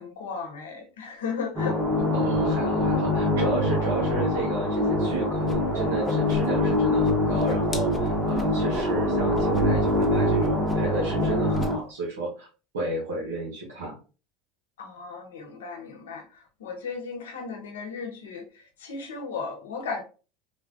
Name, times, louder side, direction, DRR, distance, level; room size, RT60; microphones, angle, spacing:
voice 1, 0.0-1.8 14.8-20.0, left 5 dB, 85° left, 0.7 m, -35 dB
sound 1, 1.6-11.8, left 1 dB, 35° right, 1.3 m, -24 dB
voice 2, 2.1-12.5 12.7-14.0, right 1 dB, 85° right, 0.8 m, -32 dB
Whoosh swoosh swish, 5.5-5.6 5.8-6.8 7.0-8.9 9.3-9.6 9.9-10.1 10.4-10.9 11.2-11.7, left 2 dB, 25° left, 0.5 m, -35 dB
3.2 x 2.1 x 2.6 m
hypercardioid pair, 90°, 0 cm